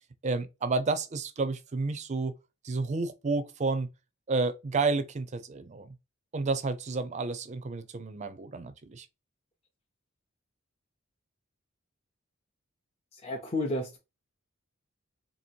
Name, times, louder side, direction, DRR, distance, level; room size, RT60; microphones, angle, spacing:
voice 1, 0.2-2.3 2.6-3.9 4.3-6.0 6.3-9.1, right 3 dB, 35° right, 0.4 m, -30 dB
voice 2, 13.1-14.0, left 1 dB, 30° left, 0.6 m, -32 dB
2.8 x 2.8 x 4.4 m
head